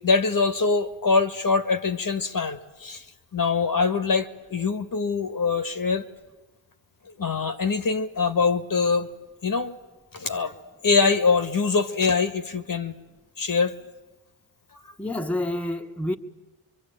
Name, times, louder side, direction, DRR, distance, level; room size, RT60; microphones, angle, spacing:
voice 1, 0.0-3.1 3.3-6.0 7.1-9.1 9.4-9.8 10.1-10.6 10.8-12.9 13.4-13.8, left 4 dB, 40° left, 1.8 m, -23 dB
voice 2, 15.0-16.2, left 1 dB, 5° left, 1.6 m, -28 dB
25.5 x 23.5 x 8.9 m
hypercardioid pair, 45°, 50 cm